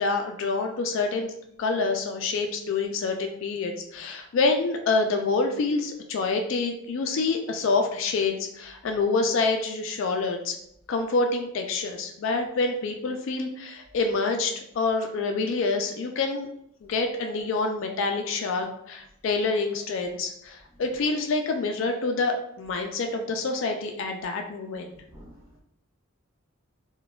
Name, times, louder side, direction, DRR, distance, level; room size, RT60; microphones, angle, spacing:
voice 1, 0.0-1.3 1.6-10.5 10.9-16.5 16.9-24.9, left 3 dB, 60° left, 4 dB, 0.3 m, -27 dB
voice 2, 25.0-25.6, equal, 15° right, -9 dB, 1.4 m, -50 dB
4.0 x 2.2 x 2.2 m, 0.73 s
head